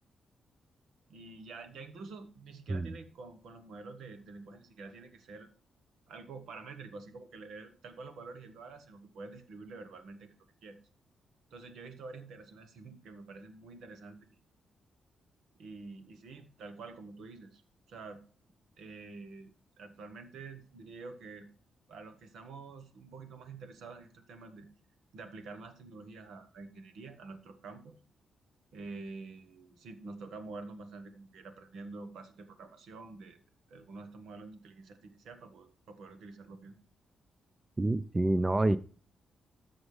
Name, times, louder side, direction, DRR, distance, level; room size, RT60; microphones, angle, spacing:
voice 1, 1.1-5.5 6.1-10.3 10.6-10.8 11.5-14.2 15.5-17.6 17.9-18.2 18.8-19.5 19.8-21.5 21.9-24.7 25.1-28.0 28.7-33.4 33.7-36.7, right 3 dB, 85° right, 9 dB, 1.3 m, -47 dB
voice 2, 37.8-38.8, right 2 dB, 15° right, 15 dB, 0.4 m, -27 dB
13.0 x 6.3 x 3.3 m, 0.40 s
wide cardioid pair, 140°, 0 cm